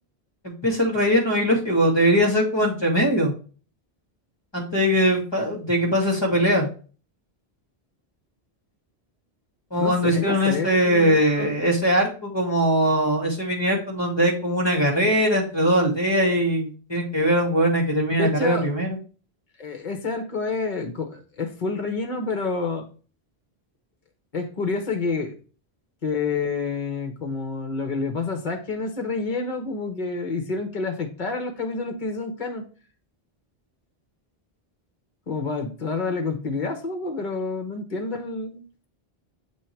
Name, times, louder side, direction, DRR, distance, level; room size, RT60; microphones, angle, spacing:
voice 1, 0.4-3.3 4.5-6.7 9.7-19.0, equal, 25° left, 2.2 m, -21 dB
voice 2, 9.8-11.7 18.2-18.7 19.6-22.9 24.3-25.3 26.0-32.6 35.3-38.6, left 4 dB, 50° left, 1.2 m, -28 dB
7.4 x 3.2 x 4.4 m
omnidirectional pair, 1.1 m